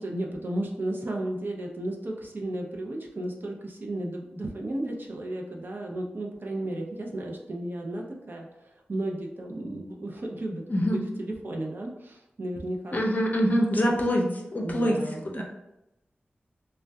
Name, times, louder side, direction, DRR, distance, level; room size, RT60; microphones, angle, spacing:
voice 1, 0.0-8.5 8.9-13.0 14.6-15.4, right 1 dB, 55° right, 0 dB, 0.5 m, -34 dB
voice 2, 10.7-11.0 12.9-15.0 15.2-15.4, equal, 45° left, -1 dB, 0.5 m, -25 dB
2.5 x 2.2 x 2.2 m, 0.91 s
cardioid pair, 40°, 4 cm